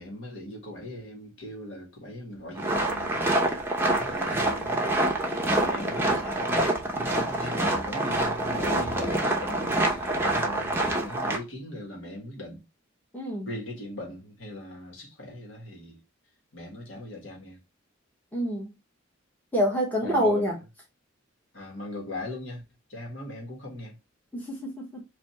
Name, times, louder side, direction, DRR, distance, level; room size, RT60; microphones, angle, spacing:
voice 1, 0.0-3.2 3.9-4.9 5.4-12.6 13.4-16.0 16.5-17.6 20.0-20.6 21.5-22.6 22.9-24.0, left 1 dB, 65° left, 1.6 m, -39 dB
sound 1, 2.6-11.4, right 1 dB, 10° right, 0.7 m, -26 dB
voice 2, 13.1-13.5 18.3-18.7 19.5-20.6 24.3-25.0, equal, 10° left, 1.1 m, -27 dB
3.4 x 2.7 x 4.3 m
head